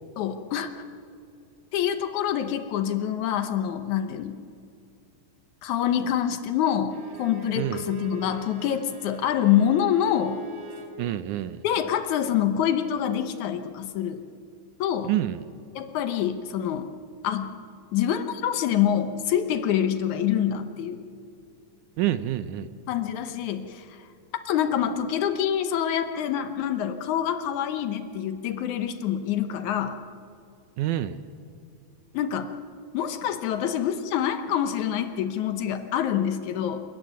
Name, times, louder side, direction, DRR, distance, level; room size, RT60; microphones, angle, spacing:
voice 1, 0.2-0.7 1.7-4.4 5.6-10.4 11.6-14.2 14.8-15.1 15.8-16.9 17.2-17.5 17.9-21.1 22.9-24.0 24.5-30.0 32.1-32.5 32.9-36.8, left 9 dB, 70° left, 9 dB, 2.1 m, -26 dB
Bowed string instrument, 6.9-11.0, right 6 dB, 50° right, 2.6 m, -43 dB
voice 2, 11.0-11.6 15.0-15.4 22.0-22.7 30.8-31.2, right 13 dB, 75° right, 13 dB, 2.0 m, -27 dB
28.0 x 14.0 x 9.4 m, 2.5 s
omnidirectional pair, 3.8 m